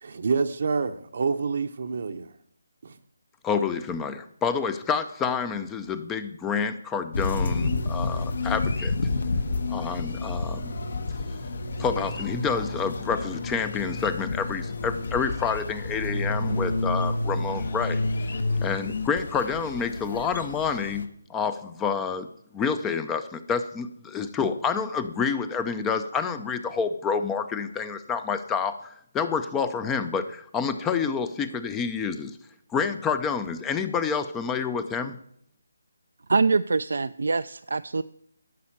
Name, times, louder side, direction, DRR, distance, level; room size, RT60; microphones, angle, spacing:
voice 1, 0.0-2.3 2.8-2.9, right 4 dB, 50° right, 0.7 m, -27 dB
voice 2, 3.4-8.9 9.7-10.7 11.8-18.0 18.6-21.1 21.3-22.3 22.5-28.7 29.1-30.3 30.5-32.3 32.7-35.1, left 6 dB, 10° left, 0.5 m, -28 dB
sound 1, 7.1-21.0, left 2 dB, 60° left, 1.2 m, -29 dB
voice 3, 36.3-38.0, right 4 dB, 75° right, 0.4 m, -24 dB
11.5 x 5.5 x 8.7 m
hypercardioid pair, 165°, 0 cm